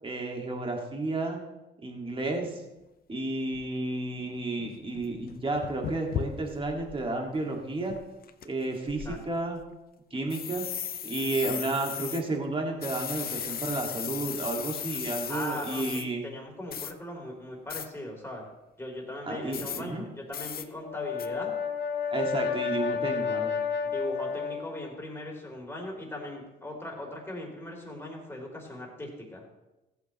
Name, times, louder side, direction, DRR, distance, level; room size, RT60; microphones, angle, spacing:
voice 1, 0.0-1.4 1.8-2.6 3.1-8.0 8.4-9.6 10.1-10.7 11.0-16.2 19.2-20.0 22.1-23.6, right 2 dB, 25° right, 1 dB, 2.1 m, -32 dB
sound 1, 2.8-2.9 3.5-3.7 4.3-4.4 4.6-7.0 7.4-7.5 7.9-8.4 8.9-9.7 10.3-12.2 12.8-16.0 16.7-16.9 17.7-17.9 19.5-19.8 20.3-20.6 21.2-21.3, left 9 dB, 50° left, 0.6 m, -36 dB
voice 2, 15.3-15.8 16.2-18.5 18.8-21.5 23.2-23.3 23.8-29.4, left 1 dB, 10° left, -1 dB, 3.4 m, -39 dB
Brass instrument, 20.7-24.9, left 6 dB, 70° left, 2.9 m, -31 dB
15.0 x 8.1 x 3.1 m, 0.97 s
cardioid pair, 90°, 20 cm